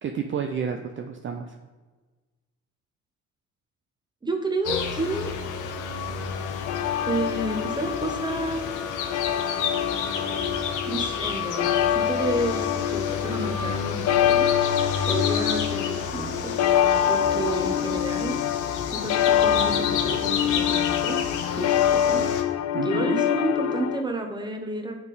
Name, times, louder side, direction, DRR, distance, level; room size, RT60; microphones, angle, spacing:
voice 1, 0.0-1.6 22.7-23.2, right 7 dB, 40° right, 4 dB, 0.5 m, -30 dB
voice 2, 4.2-5.3 7.1-8.6 10.9-14.5 15.0-16.5 17.1-18.4 18.9-21.2 21.6-22.3 22.8-25.0, right 2 dB, 15° right, 4 dB, 1.0 m, -30 dB
sound 1, 4.6-22.4, left 6 dB, 85° left, 0.8 m, -30 dB
sound 2, 6.7-24.0, left 10 dB, 60° left, 0.4 m, -25 dB
8.7 x 3.6 x 4.1 m, 1.3 s
cardioid pair, 90°, 30 cm